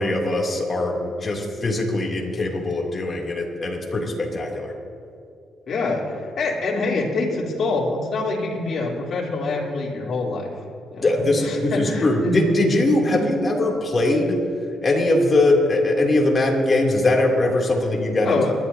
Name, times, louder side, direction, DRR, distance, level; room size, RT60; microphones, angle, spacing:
voice 1, 0.0-4.7 11.0-14.4 14.8-18.4, left 2 dB, 35° left, -1 dB, 3.1 m, -21 dB
voice 2, 5.7-10.5 10.9-11.1 11.4-13.3 18.2-18.5, left 3 dB, 55° left, -4 dB, 3.8 m, -25 dB
29.5 x 12.0 x 2.9 m, 2.6 s
cardioid pair, 90°, 0 cm